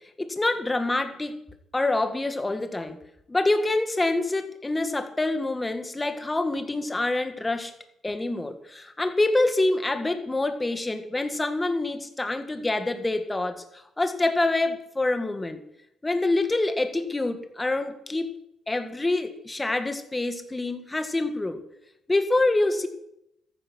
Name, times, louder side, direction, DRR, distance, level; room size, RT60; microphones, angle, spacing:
voice 1, 0.2-1.4 1.7-3.0 3.3-7.7 8.0-15.6 16.0-18.4 18.7-21.6 22.1-22.9, left 2 dB, 15° left, 8 dB, 1.9 m, -26 dB
14.5 x 11.0 x 6.2 m, 0.79 s
cardioid pair, 90°, 0 cm